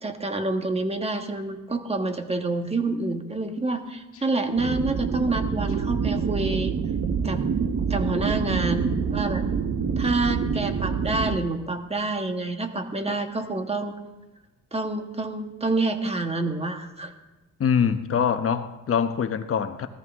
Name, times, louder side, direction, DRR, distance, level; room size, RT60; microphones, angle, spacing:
voice 1, 0.0-6.7 7.2-7.4 7.9-9.4 10.0-13.9 14.7-17.1, right 2 dB, 20° right, 1.5 m, -27 dB
sound 1, 4.6-11.4, right 6 dB, 50° right, 1.2 m, -26 dB
voice 2, 17.6-19.9, left 7 dB, 45° left, 1.1 m, -24 dB
17.0 x 14.0 x 3.6 m
cardioid pair, 90°, 30 cm